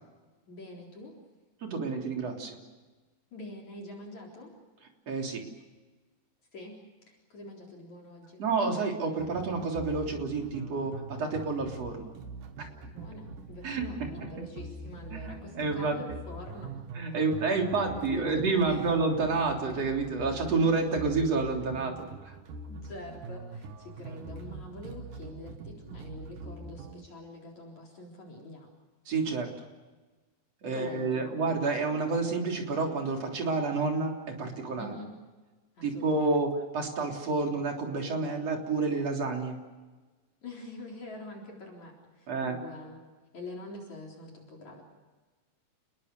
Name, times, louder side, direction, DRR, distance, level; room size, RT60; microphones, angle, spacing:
voice 1, 0.5-1.1 3.3-4.5 6.5-6.8 7.1-8.5 12.9-16.7 17.1-17.2 17.5-18.9 22.7-28.7 30.7-31.3 34.8-35.1 35.8-36.5 40.4-43.0 43.3-44.8, left 2 dB, 50° left, -1 dB, 5.1 m, -45 dB
voice 2, 1.6-2.6 5.1-5.4 8.4-12.1 12.6-12.7 13.6-13.8 15.1-16.0 16.9-22.3 29.1-29.5 30.6-34.9 35.8-39.6 42.3-42.6, right 3 dB, 45° right, 2 dB, 4.3 m, -29 dB
sound 1, 9.2-27.1, right 3 dB, 60° right, 3.0 m, -44 dB
29.0 x 21.5 x 6.9 m, 1.3 s
omnidirectional pair, 4.3 m